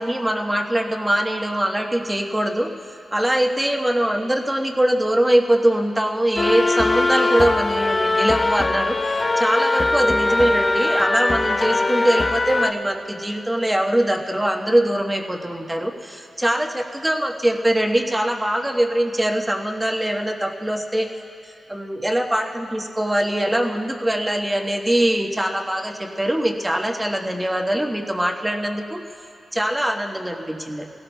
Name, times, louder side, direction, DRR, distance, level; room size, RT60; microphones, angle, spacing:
voice 1, 0.0-2.7 3.1-9.0 9.4-21.1 21.7-29.0 29.5-30.8, right 1 dB, 10° right, 1 dB, 1.2 m, -22 dB
sound 1, 6.4-12.7, left 2 dB, 30° left, 0.5 m, -21 dB
29.5 x 18.0 x 2.3 m, 2.8 s
wide cardioid pair, 120°, 0 cm